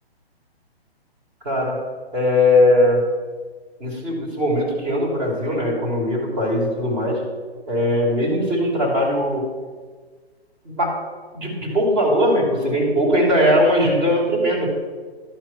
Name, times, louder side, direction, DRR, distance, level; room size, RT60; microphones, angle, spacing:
voice 1, 1.4-1.8 2.1-3.0 3.8-7.2 7.7-9.5 10.6-10.9 11.3-14.7, left 1 dB, 25° right, -2 dB, 2.6 m, -19 dB
11.5 x 4.7 x 5.7 m, 1.5 s
figure-of-eight pair, 130°, 32 cm